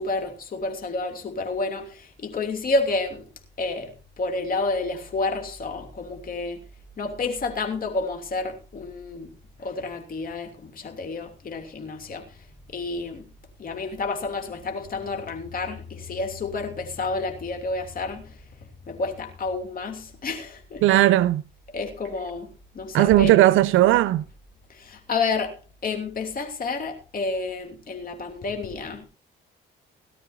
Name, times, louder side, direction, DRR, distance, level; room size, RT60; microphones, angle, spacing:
voice 1, 0.0-3.3 3.6-6.6 7.0-9.3 9.6-12.4 12.7-13.3 13.6-18.3 18.9-21.1 21.7-23.5 24.7-25.6 25.8-29.1, left 3 dB, 45° left, 3.0 m, -30 dB
voice 2, 20.8-21.4 22.9-24.2, right 15 dB, 90° right, 0.6 m, -17 dB
18.5 x 12.5 x 2.8 m
cardioid pair, 90°, 20 cm